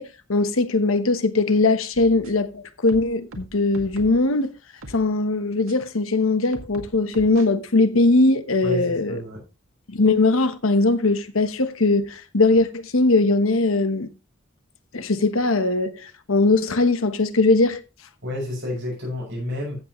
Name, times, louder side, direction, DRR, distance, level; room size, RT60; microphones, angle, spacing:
voice 1, 0.0-4.6 4.9-9.2 9.9-14.1 14.9-17.8, left 2 dB, 80° left, 1.2 m, -20 dB
sound 1, 1.9-2.5 2.9-4.3 4.8-5.0 5.7-5.8 6.5-7.5, right 1 dB, 85° right, 1.9 m, -41 dB
voice 2, 8.6-9.4 18.2-19.8, left 1 dB, 55° right, 6.5 m, -30 dB
15.0 x 7.6 x 3.1 m
head